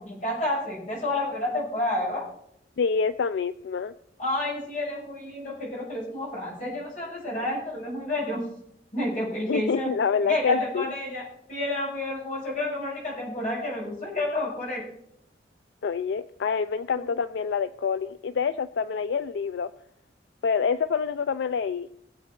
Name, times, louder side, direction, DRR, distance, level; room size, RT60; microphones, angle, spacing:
voice 1, 0.0-2.3 4.2-8.5 8.9-9.9 10.3-14.9 16.9-17.0, left 1 dB, 40° left, -3 dB, 5.4 m, -30 dB
voice 2, 2.8-3.9 9.5-10.8 15.8-19.7 20.4-21.9, left 6 dB, 75° left, 13 dB, 0.4 m, -27 dB
22.0 x 7.5 x 4.2 m, 0.73 s
head